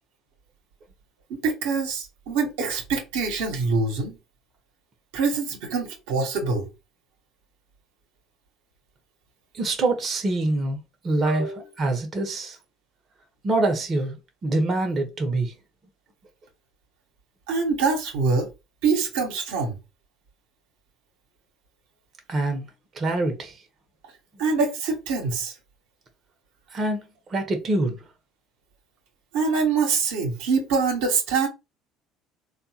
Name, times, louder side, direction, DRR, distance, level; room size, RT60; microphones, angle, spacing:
voice 1, 1.3-4.2 5.1-6.7 11.3-11.6 17.5-18.5 18.8-19.8 24.4-25.5 29.3-31.5, right 4 dB, 80° right, 1.1 m, -24 dB
voice 2, 9.5-10.8 11.0-12.6 13.4-14.2 14.4-15.5 22.3-22.7 22.9-23.6 26.7-27.0 27.3-28.0, right 2 dB, 40° right, 1.0 m, -25 dB
3.4 x 2.4 x 2.8 m
hypercardioid pair, 70°, 0 cm